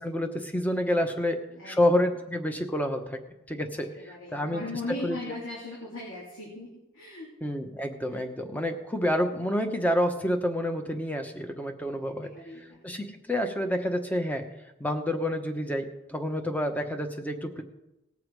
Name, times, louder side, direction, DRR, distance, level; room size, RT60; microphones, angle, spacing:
voice 1, 0.0-1.4 1.7-3.2 3.5-3.9 4.3-4.6 5.0-5.2 7.4-12.3 12.8-14.5 14.8-17.6, left 1 dB, 10° left, 6 dB, 1.0 m, -28 dB
voice 2, 4.0-7.3 8.1-8.2 12.2-12.9, left 2 dB, 75° left, -4 dB, 3.0 m, -39 dB
19.0 x 7.2 x 4.8 m, 0.93 s
head